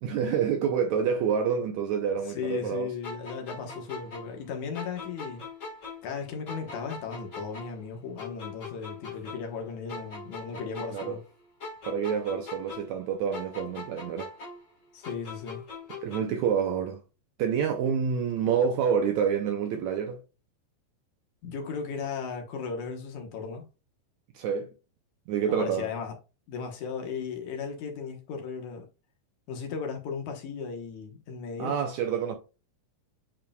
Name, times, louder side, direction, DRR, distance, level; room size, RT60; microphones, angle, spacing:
voice 1, 0.0-2.9 10.9-11.2 11.9-14.3 16.0-17.0 17.4-20.2 24.3-24.7 25.3-25.9 31.6-32.4, right 7 dB, 90° right, 1.6 m, -27 dB
voice 2, 2.3-5.4 6.0-11.2 14.9-15.6 21.4-23.6 25.5-26.1 26.5-28.9 29.5-31.8, left 6 dB, 65° left, 2.2 m, -36 dB
sound 1, 3.0-6.2 6.5-9.6 9.9-13.0 13.3-16.5, left 3 dB, 40° left, 1.1 m, -42 dB
8.9 x 4.7 x 2.3 m
omnidirectional pair, 4.3 m